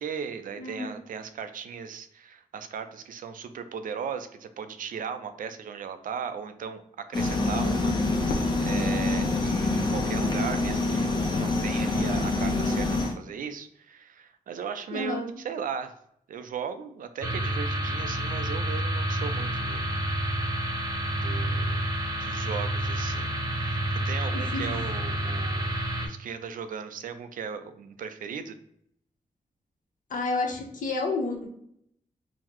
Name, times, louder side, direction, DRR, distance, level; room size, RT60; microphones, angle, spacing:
voice 1, 0.0-15.9 16.3-19.9 21.2-21.8 22.2-28.6, right 7 dB, 75° right, 9 dB, 0.4 m, -37 dB
voice 2, 0.6-1.0 14.9-15.3 24.3-24.7 30.1-31.5, left 3 dB, 65° left, 1 dB, 0.8 m, -30 dB
sound 1, 7.1-13.1, left 2 dB, 30° left, 0.6 m, -26 dB
Fireworks, 8.3-10.5, left 3 dB, 90° left, 0.4 m, -39 dB
sound 2, 17.2-26.1, right 1 dB, 25° right, 0.8 m, -29 dB
3.8 x 2.0 x 2.9 m, 0.71 s
wide cardioid pair, 110°, 14 cm